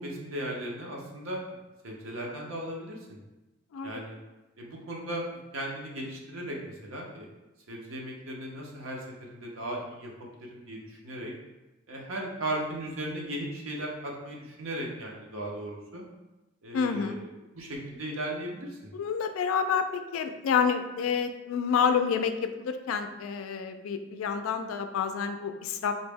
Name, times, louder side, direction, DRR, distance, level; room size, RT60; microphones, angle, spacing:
voice 1, 0.0-1.4 1.8-3.2 3.8-4.2 4.6-7.3 7.7-10.1 10.5-11.3 11.9-16.0 16.6-17.3 17.5-18.9, right 1 dB, 85° right, -1 dB, 0.7 m, -37 dB
voice 2, 16.7-17.2 18.9-25.9, left 6 dB, 85° left, 8 dB, 0.3 m, -28 dB
3.9 x 2.0 x 3.4 m, 1.0 s
head